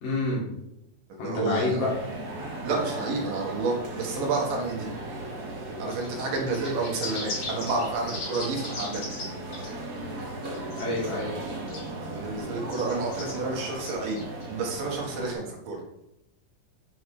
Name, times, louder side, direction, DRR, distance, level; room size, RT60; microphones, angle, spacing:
voice 1, 0.0-0.4 1.2-1.9 10.8-11.3, left 2 dB, 80° left, -4 dB, 4.1 m, -27 dB
voice 2, 1.1-1.9 2.6-4.9 5.8-9.1 12.1-14.2 14.5-15.8, right 3 dB, 80° right, -1 dB, 3.1 m, -30 dB
sound 1, 1.8-15.3, right 2 dB, 55° right, 1.1 m, -37 dB
sound 2, 5.9-9.3 9.5-9.7 10.2-11.1 11.4-11.9 12.7-13.3 13.8-14.5, left 2 dB, 45° left, 2.8 m, -38 dB
8.6 x 5.9 x 3.2 m, 0.86 s
omnidirectional pair, 3.8 m